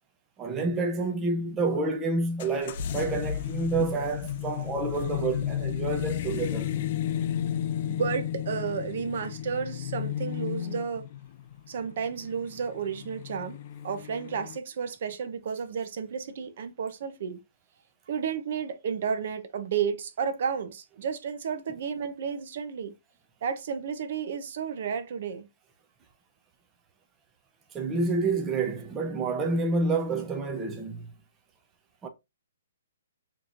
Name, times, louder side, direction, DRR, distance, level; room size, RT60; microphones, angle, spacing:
voice 1, 0.4-6.7 27.7-31.1 32.0-32.1, right 3 dB, 15° right, 0.6 m, -28 dB
sound 1, 2.4-14.6, left 10 dB, 40° left, 0.5 m, -33 dB
voice 2, 7.9-11.0 11.7-17.4 18.1-22.9 23.4-25.5, right 6 dB, 55° right, 0.7 m, -32 dB
6.0 x 2.9 x 2.5 m
hypercardioid pair, 160°, 0 cm